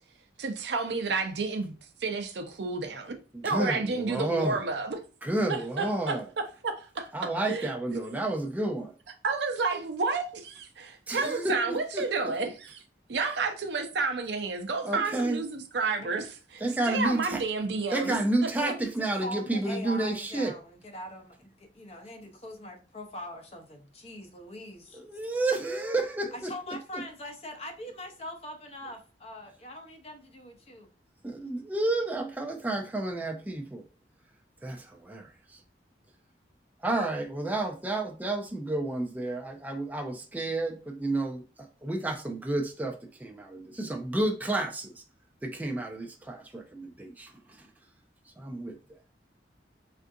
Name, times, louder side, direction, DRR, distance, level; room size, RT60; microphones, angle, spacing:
voice 1, 0.4-1.7 2.0-3.1 3.4-5.0 5.5-7.7 9.2-12.8 13.1-18.2, right 4 dB, 75° right, 0.6 m, -31 dB
voice 2, 3.3-4.6 5.2-6.3 7.1-8.9 11.1-12.0 14.8-15.4 16.6-17.4 17.9-20.5 24.9-26.8 31.2-33.9 34.6-35.6 36.8-45.0 45.4-47.3 47.6-47.7 48.4-48.8, right 2 dB, 10° right, 0.3 m, -31 dB
voice 3, 18.6-18.9 19.2-25.0 26.3-30.9, left 1 dB, 35° left, 0.6 m, -42 dB
3.5 x 2.5 x 2.6 m
head